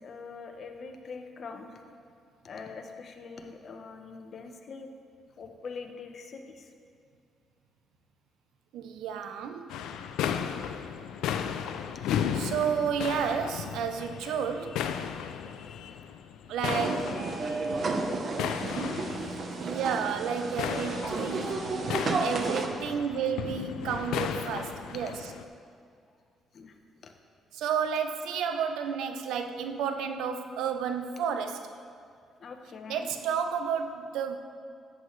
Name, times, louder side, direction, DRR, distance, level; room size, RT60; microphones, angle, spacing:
voice 1, 0.0-1.8 2.4-4.9 5.4-6.7 17.5-19.0 19.5-19.7 26.5-27.1 32.4-33.1, left 4 dB, 55° left, 4 dB, 1.0 m, -44 dB
voice 2, 8.7-9.7 12.3-14.9 16.5-17.2 19.6-21.6 22.2-25.3 27.5-31.8 32.9-34.4, right 7 dB, 85° right, 8 dB, 0.6 m, -31 dB
sound 1, 9.7-25.4, left 8 dB, 90° left, 0.4 m, -35 dB
sound 2, 16.6-22.7, right 3 dB, 50° right, 0.9 m, -32 dB
13.5 x 8.1 x 3.2 m, 2.3 s
cardioid pair, 90°, 0 cm